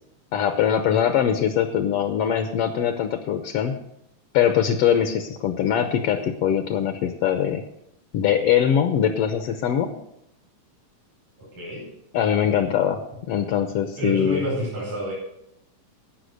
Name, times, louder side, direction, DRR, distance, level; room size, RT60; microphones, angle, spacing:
voice 1, 0.3-3.7 4.3-7.6 8.1-9.9 12.1-13.0 13.3-14.4, left 9 dB, 70° left, 8 dB, 1.5 m, -22 dB
voice 2, 11.5-11.9 14.0-15.1, equal, 80° right, -8 dB, 6.7 m, -28 dB
16.5 x 5.9 x 6.5 m, 0.79 s
omnidirectional pair, 3.5 m